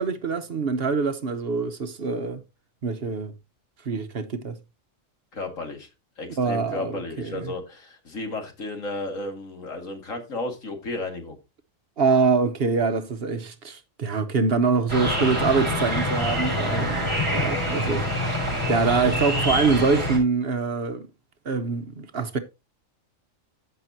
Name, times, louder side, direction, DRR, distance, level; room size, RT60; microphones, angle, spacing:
voice 1, 0.0-2.4 2.8-3.3 3.8-4.6 6.4-7.5 12.0-18.4 18.7-21.1 21.4-22.4, right 4 dB, 55° right, 1.0 m, -24 dB
voice 2, 5.3-5.9 6.2-11.4, left 2 dB, 80° left, 2.5 m, -33 dB
sound 1, 14.9-20.2, equal, 15° left, 6.3 m, -26 dB
15.0 x 5.9 x 2.7 m
omnidirectional pair, 1.4 m